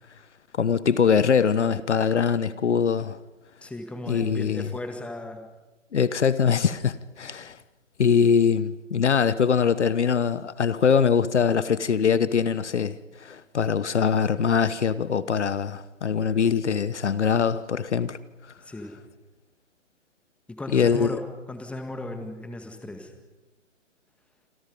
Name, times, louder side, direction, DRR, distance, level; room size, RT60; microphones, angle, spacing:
voice 1, 0.6-3.2 4.1-4.7 5.9-7.6 8.0-13.0 13.2-18.2 20.7-21.2, left 6 dB, 65° left, 1.2 m, -22 dB
voice 2, 3.6-5.5 18.6-18.9 20.5-23.1, left 1 dB, 5° left, 1.9 m, -36 dB
27.5 x 27.0 x 5.4 m
figure-of-eight pair, 135°, 37 cm